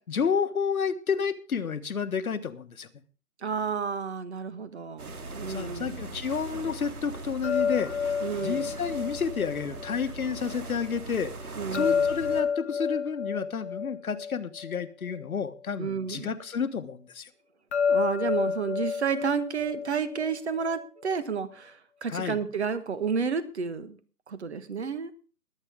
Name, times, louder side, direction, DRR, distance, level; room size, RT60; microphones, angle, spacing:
voice 1, 0.1-2.9 5.5-8.2 8.4-17.3 22.1-22.4, left 6 dB, 65° left, 10 dB, 1.4 m, -30 dB
voice 2, 3.4-6.1 8.2-8.7 11.6-12.1 15.8-16.3 17.9-24.0 24.3-25.1, right 6 dB, 45° right, 13 dB, 1.5 m, -31 dB
sound 1, 5.0-12.4, right 2 dB, 65° right, 3.0 m, -40 dB
sound 2, 7.4-10.5 11.7-15.3 17.7-20.8, left 6 dB, 45° left, 0.8 m, -30 dB
22.0 x 8.9 x 3.7 m, 0.37 s
hypercardioid pair, 165°, 47 cm